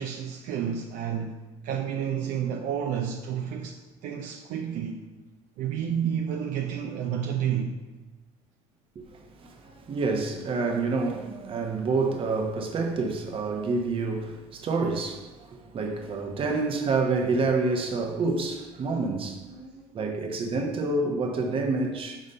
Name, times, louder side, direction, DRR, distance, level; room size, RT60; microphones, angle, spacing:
voice 1, 0.0-1.3 1.6-5.0 5.6-7.8 13.5-13.6, right 8 dB, 70° right, 0.5 m, -30 dB
voice 2, 9.4-15.3 15.7-22.2, right 3 dB, 40° right, 1.0 m, -28 dB
5.1 x 3.9 x 5.5 m
supercardioid pair, 100°, 14 cm